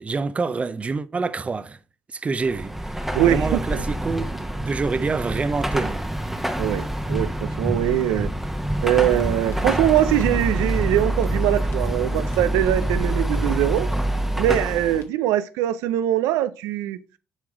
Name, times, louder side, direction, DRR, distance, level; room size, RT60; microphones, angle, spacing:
voice 1, 0.0-1.8 2.1-6.0, right 4 dB, 25° right, 0.6 m, -27 dB
Car passing by / Traffic noise roadway noise / Engine, 2.4-15.0, right 1 dB, 5° right, 1.0 m, -26 dB
voice 2, 3.1-3.8 6.6-8.3 8.8-13.9 14.4-17.0, right 12 dB, 85° right, 0.5 m, -22 dB
sound 1, 8.8-15.0, left 7 dB, 55° left, 1.3 m, -41 dB
7.3 x 4.8 x 4.8 m
cardioid pair, 90°, 5 cm